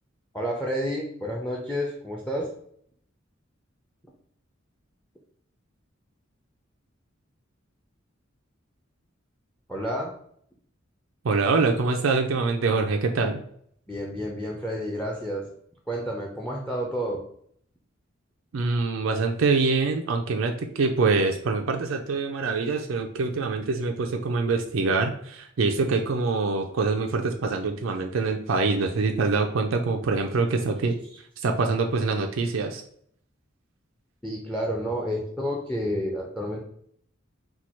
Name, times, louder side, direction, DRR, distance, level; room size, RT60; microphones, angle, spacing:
voice 1, 0.3-2.5 9.7-10.1 13.9-15.5 15.9-17.2 34.2-36.6, equal, 5° left, 0 dB, 0.5 m, -30 dB
voice 2, 11.2-13.4 18.5-30.9 31.4-32.8, right 4 dB, 75° right, 4 dB, 0.4 m, -25 dB
4.4 x 2.3 x 4.3 m, 0.66 s
head